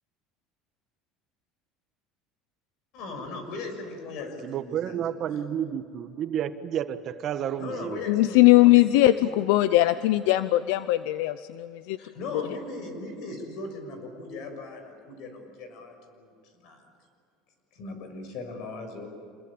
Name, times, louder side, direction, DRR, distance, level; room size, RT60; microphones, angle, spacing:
voice 1, 2.9-5.4 7.6-9.3 12.0-16.3 16.6-16.8 17.7-19.1, left 3 dB, 65° left, 6 dB, 6.3 m, -38 dB
voice 2, 4.4-8.0, right 9 dB, 40° right, 9 dB, 1.4 m, -31 dB
voice 3, 8.1-9.1 9.5-12.0, left 17 dB, 80° left, 13 dB, 0.7 m, -20 dB
27.0 x 21.5 x 8.7 m, 2.3 s
cardioid pair, 140°, 0 cm